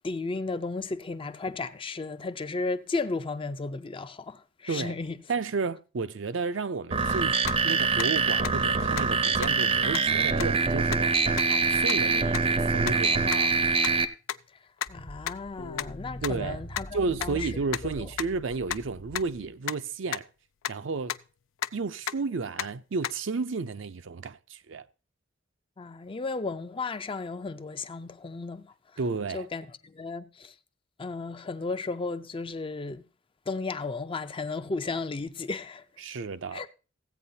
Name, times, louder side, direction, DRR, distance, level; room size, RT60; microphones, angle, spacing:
voice 1, 0.0-5.2 14.9-17.5 18.0-18.1 25.8-28.7 29.3-30.5 31.0-33.0 33.5-35.8 36.5-36.7, left 3 dB, 25° left, 0.5 m, -34 dB
voice 2, 5.3-7.4 7.6-13.6 16.2-16.6 16.9-20.3 20.7-21.1 21.7-24.8 29.0-29.5 36.0-36.7, right 4 dB, 70° right, 0.5 m, -32 dB
sound 1, 6.9-14.0, right 4 dB, 30° right, 0.6 m, -24 dB
sound 2, 7.5-7.6 8.0-8.1 8.4-8.5 9.0-9.1 9.4-9.5 9.9-10.0 10.4-10.5 10.9-11.0 11.4-11.5 11.9-12.0 12.3-12.4 12.8-12.9 13.3-13.4 13.8-13.9 14.3-14.4 14.8-14.9 15.3-15.4 15.8-15.9 16.2-16.3 16.8-16.9 17.2-17.3 17.7-17.8 18.2-18.3 18.7-18.8 19.2-19.3 19.7-19.8 20.1-20.2 20.6-20.7 21.1-21.2 21.6-21.7 22.1-22.2 22.6-22.7 23.0-23.1, left 11 dB, 90° left, 0.4 m, -31 dB
sound 3, 14.9-19.5, equal, 75° left, 1.2 m, -43 dB
15.5 x 8.6 x 2.7 m
head